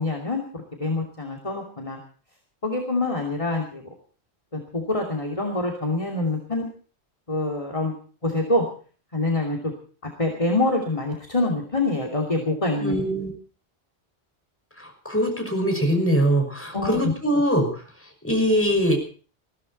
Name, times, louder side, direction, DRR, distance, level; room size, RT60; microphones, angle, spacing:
voice 1, 0.0-2.0 2.6-3.8 4.5-6.6 7.3-7.9 8.2-8.6 9.1-9.7 10.2-13.0 16.7-17.1, left 2 dB, 30° left, 1 dB, 2.9 m, -25 dB
voice 2, 12.8-13.3 14.8-17.8 18.2-19.0, equal, 10° left, 2 dB, 6.0 m, -22 dB
22.0 x 15.5 x 4.2 m, 0.40 s
omnidirectional pair, 1.1 m